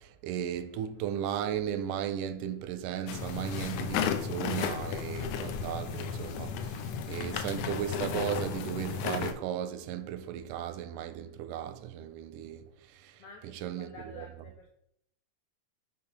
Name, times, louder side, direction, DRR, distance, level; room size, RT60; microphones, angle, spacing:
voice 1, 0.0-12.6 12.9-13.1 13.6-13.9 14.2-14.3, right 9 dB, 90° right, 2.1 m, -35 dB
sound 1, 3.1-9.3, left 7 dB, 90° left, 1.5 m, -34 dB
voice 2, 13.2-14.7, left 3 dB, 70° left, 1.4 m, -50 dB
6.7 x 3.6 x 5.9 m
omnidirectional pair, 3.6 m